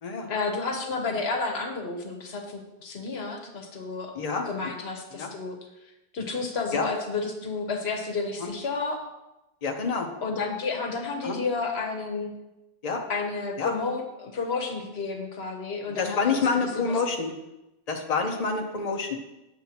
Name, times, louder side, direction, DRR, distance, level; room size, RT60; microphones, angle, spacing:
voice 1, 0.3-4.1 4.4-5.6 6.1-9.0 10.2-12.3 13.1-16.4, left 4 dB, 80° left, 4 dB, 1.2 m, -31 dB
voice 2, 4.1-4.5 5.1-5.3 6.7-6.9 8.4-8.5 9.6-10.1 11.2-11.4 12.8-13.0 13.6-13.7 15.9-17.3 17.9-19.2, left 4 dB, 40° left, 2 dB, 0.8 m, -27 dB
7.5 x 7.0 x 2.9 m, 0.96 s
omnidirectional pair, 1.1 m